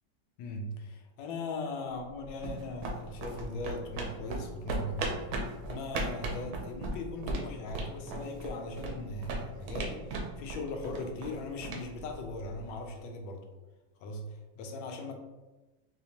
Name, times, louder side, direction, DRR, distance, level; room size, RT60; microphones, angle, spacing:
voice 1, 0.4-5.3 5.7-13.5 14.0-15.1, left 2 dB, 90° left, 4 dB, 1.3 m, -39 dB
sound 1, 2.0-12.8, right 2 dB, 70° right, 0.9 m, -38 dB
4.1 x 2.8 x 2.8 m, 1.1 s
omnidirectional pair, 2.0 m